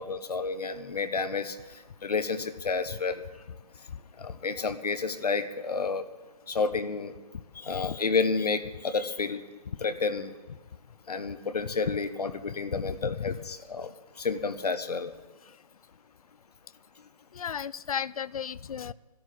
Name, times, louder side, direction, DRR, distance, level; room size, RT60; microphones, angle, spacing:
voice 1, 0.0-1.5 2.0-3.2 4.2-6.0 6.5-7.1 7.5-9.4 9.8-10.3 11.1-13.9 14.2-15.1, left 4 dB, 80° left, 10 dB, 1.2 m, -30 dB
voice 2, 12.9-13.4 17.3-18.9, left 7 dB, 65° left, 21 dB, 0.4 m, -34 dB
12.5 x 11.0 x 7.7 m, 1.2 s
hypercardioid pair, 180°, 20 cm